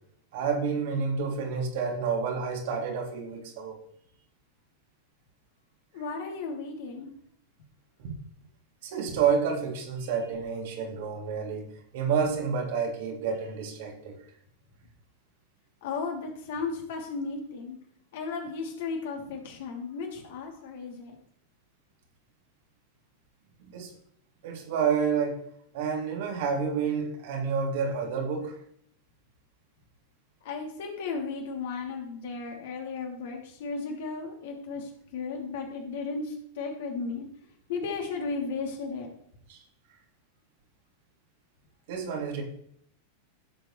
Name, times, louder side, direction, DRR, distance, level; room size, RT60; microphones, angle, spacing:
voice 1, 0.3-3.8 8.0-8.1 8.8-14.2 23.6-23.9 24.4-25.4 25.7-28.6 39.5-39.6 41.9-42.4, right 6 dB, 50° right, 1 dB, 3.1 m, -29 dB
voice 2, 5.9-7.1 15.8-17.8 18.1-21.2 30.4-37.3 37.7-39.1, left 4 dB, 55° left, 1 dB, 3.1 m, -35 dB
17.0 x 7.9 x 3.3 m, 0.68 s
figure-of-eight pair, 90°, 0 cm